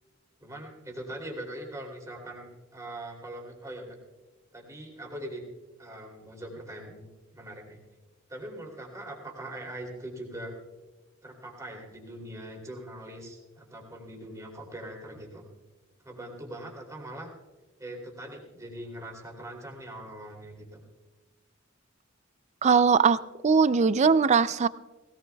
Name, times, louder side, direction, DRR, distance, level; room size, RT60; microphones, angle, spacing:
voice 1, 0.4-4.0 4.5-5.4 5.8-7.1 7.3-7.8 8.3-10.5 11.2-15.4 16.0-17.3 17.8-20.8, right 1 dB, 15° right, -1 dB, 2.9 m, -41 dB
voice 2, 22.6-23.2 23.4-24.7, right 5 dB, 35° right, 16 dB, 0.4 m, -20 dB
19.5 x 18.0 x 2.3 m, 1.2 s
head